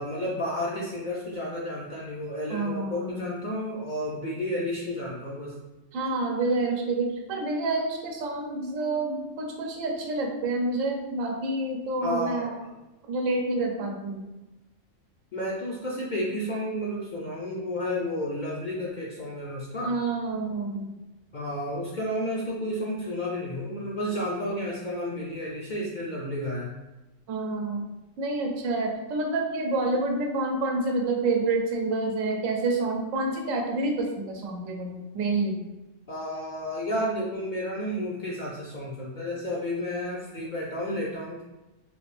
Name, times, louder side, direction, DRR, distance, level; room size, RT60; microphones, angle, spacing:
voice 1, 0.0-5.6 12.0-12.7 15.3-19.9 21.3-26.7 36.1-41.4, left 1 dB, 55° left, -4 dB, 0.5 m, -31 dB
voice 2, 2.5-3.3 5.9-12.6 13.1-14.3 19.8-21.0 27.3-27.9 28.2-35.6, right 2 dB, 80° right, 1 dB, 1.0 m, -28 dB
3.3 x 2.5 x 3.2 m, 1.0 s
omnidirectional pair, 1.4 m